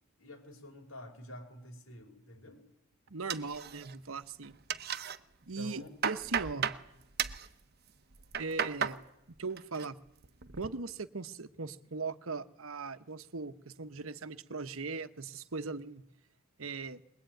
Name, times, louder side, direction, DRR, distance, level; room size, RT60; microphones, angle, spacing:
voice 1, 0.2-2.6 5.6-6.0, equal, 75° left, 3 dB, 5.0 m, -48 dB
voice 2, 3.1-4.6 5.5-6.7 8.4-9.0 9.4-10.0 10.5-16.0 16.6-17.0, right 4 dB, 70° right, 12 dB, 1.0 m, -39 dB
sound 1, 3.3-4.1 4.4-5.2 5.6-6.8 7.2-7.5 8.1-9.0 9.4-9.9 10.2-10.7, right 8 dB, 45° right, 1.0 m, -35 dB
22.0 x 21.5 x 9.1 m, 0.83 s
head